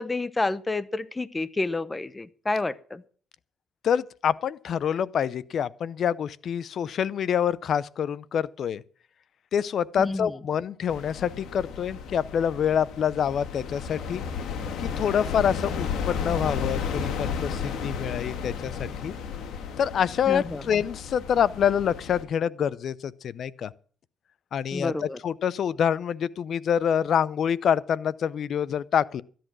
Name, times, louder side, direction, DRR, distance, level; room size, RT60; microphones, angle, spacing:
voice 1, 0.0-3.0 10.0-10.4 20.3-20.6 24.7-25.2, left 2 dB, 20° left, 0.8 m, -29 dB
voice 2, 3.8-8.8 9.5-14.2 14.8-19.2 19.8-23.7 24.5-29.2, left 8 dB, 60° left, 0.6 m, -26 dB
sound 1, 10.9-22.2, left 6 dB, 80° left, 1.8 m, -33 dB
13.5 x 10.5 x 6.1 m
cardioid pair, 90°, 0 cm